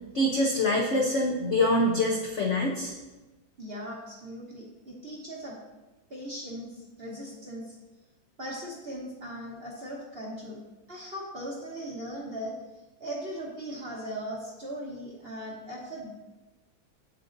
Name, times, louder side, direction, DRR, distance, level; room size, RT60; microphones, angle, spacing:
voice 1, 0.1-2.9, left 1 dB, 65° left, -1 dB, 0.7 m, -25 dB
voice 2, 3.6-5.6 6.1-6.7 7.0-7.7 8.4-10.6 10.9-12.5 13.0-16.1, equal, 40° right, -3 dB, 1.0 m, -38 dB
8.3 x 7.5 x 2.6 m, 1.1 s
omnidirectional pair, 2.2 m